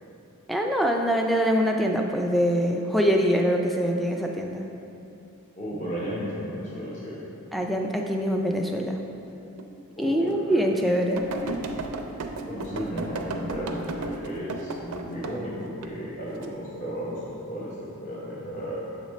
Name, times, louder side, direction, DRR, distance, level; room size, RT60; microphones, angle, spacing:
voice 1, 0.5-4.7 7.5-9.0 10.0-11.2, equal, ahead, 2 dB, 0.3 m, -24 dB
voice 2, 5.5-7.2 10.0-10.6 12.4-18.8, equal, 35° left, -6 dB, 0.9 m, -34 dB
sound 1, 9.6-9.7 10.3-10.4 11.2-15.4 15.8-16.5 17.1-17.4, right 3 dB, 80° right, 0.5 m, -34 dB
7.0 x 5.1 x 3.2 m, 2.8 s
head